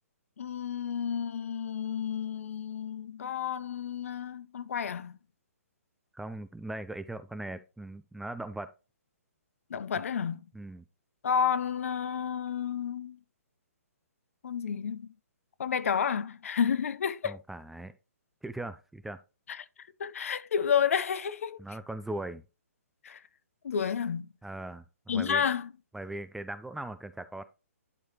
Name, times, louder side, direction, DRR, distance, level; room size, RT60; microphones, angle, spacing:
voice 1, 0.4-5.2 9.7-10.5 11.2-13.2 14.4-15.1 15.6-17.4 19.5-19.7 20.0-21.6 23.0-23.2 23.6-24.3 25.1-25.7, left 7 dB, 65° left, 0.7 m, -31 dB
voice 2, 6.1-8.7 10.5-10.8 17.2-17.9 18.4-19.2 21.6-22.4 24.4-25.4 25.9-27.4, right 2 dB, 5° right, 0.3 m, -39 dB
11.0 x 4.8 x 2.9 m
figure-of-eight pair, 135°, 8 cm